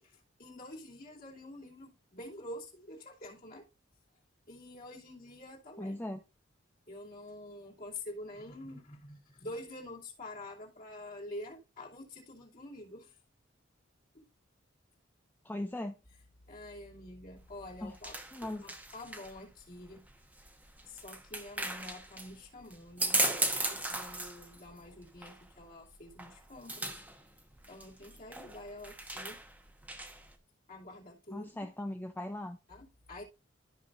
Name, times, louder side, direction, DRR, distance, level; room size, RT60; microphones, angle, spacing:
voice 1, 0.0-3.6 4.5-6.0 6.9-13.2 14.1-14.3 16.5-20.0 20.9-27.0 27.7-29.4 30.7-31.7 32.7-33.2, left 1 dB, 50° left, 2.8 m, -47 dB
voice 2, 5.8-6.2 15.4-15.9 17.8-18.0 18.3-18.6 31.3-32.6, left 1 dB, 10° left, 0.4 m, -38 dB
sound 1, 17.4-30.3, right 2 dB, 10° right, 1.0 m, -38 dB
13.0 x 5.4 x 2.5 m
head